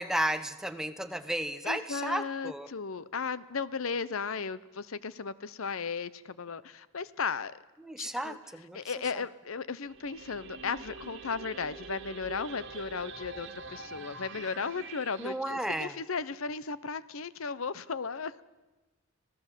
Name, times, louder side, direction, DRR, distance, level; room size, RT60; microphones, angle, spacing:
voice 1, 0.0-2.7 7.8-8.8 15.2-15.9, right 1 dB, ahead, 9 dB, 0.9 m, -33 dB
voice 2, 1.6-7.6 8.0-8.4 8.7-18.4, left 5 dB, 80° left, 17 dB, 0.8 m, -35 dB
sound 1, 9.9-15.4, right 3 dB, 60° right, 2.2 m, -45 dB
26.0 x 17.5 x 7.4 m, 1.1 s
head